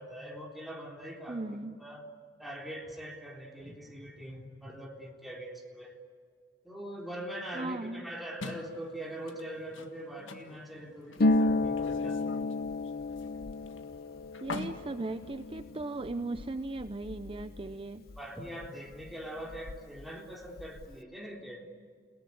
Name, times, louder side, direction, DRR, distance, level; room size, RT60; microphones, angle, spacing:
voice 1, 0.0-2.0 2.4-5.9 6.6-12.2 18.1-21.7, right 1 dB, ahead, 0 dB, 3.6 m, -42 dB
voice 2, 1.3-1.8 7.5-8.1 14.4-18.0, right 2 dB, 30° right, 10 dB, 0.6 m, -37 dB
sound 1, 8.4-16.2, left 3 dB, 70° left, 1.8 m, -46 dB
Harp, 11.2-18.7 18.9-20.0 20.3-21.0, left 2 dB, 50° left, 0.7 m, -33 dB
29.5 x 18.0 x 9.6 m, 2.1 s
head